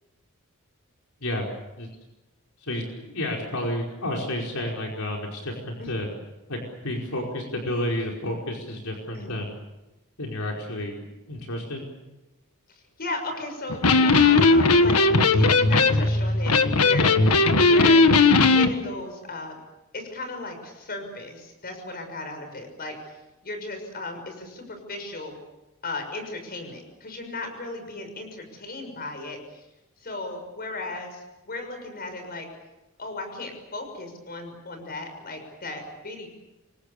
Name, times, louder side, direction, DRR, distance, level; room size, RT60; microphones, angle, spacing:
voice 1, 2.6-6.1 6.5-9.5 10.2-11.9, left 1 dB, 70° left, 0 dB, 5.1 m, -31 dB
voice 2, 12.7-18.1 18.5-19.6 19.9-23.1 23.4-25.4 25.8-29.6 30.0-32.5 33.0-36.3, left 2 dB, 45° left, 6 dB, 6.5 m, -36 dB
Electric guitar, 13.7-18.7, left 3 dB, 90° left, 1.6 m, -18 dB
28.0 x 24.5 x 7.0 m, 0.98 s
head